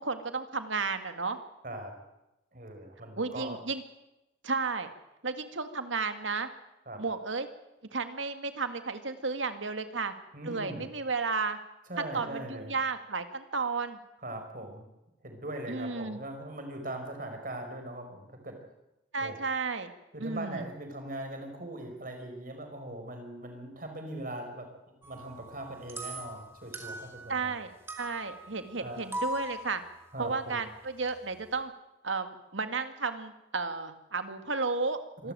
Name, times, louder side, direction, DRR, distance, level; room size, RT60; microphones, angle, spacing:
voice 1, 0.0-1.4 3.1-3.8 4.4-4.9 5.2-6.5 7.0-7.5 7.9-10.1 10.4-11.6 12.1-14.0 15.7-16.2 19.1-19.9 20.2-20.7 27.3-27.7 28.0-29.8 30.2-31.7 32.0-35.3, right 4 dB, 80° right, 9 dB, 2.0 m, -33 dB
voice 2, 1.6-1.9 2.5-3.6 6.9-7.0 10.3-10.9 11.9-12.7 14.2-14.9 15.2-18.6 19.2-19.4 20.1-27.6 28.8-29.0 30.1-30.6 35.2-35.3, right 1 dB, 45° right, 5 dB, 5.0 m, -40 dB
sound 1, 25.0-27.6 27.9-31.6, right 1 dB, 10° right, 2.3 m, -41 dB
26.0 x 13.0 x 9.1 m, 0.95 s
head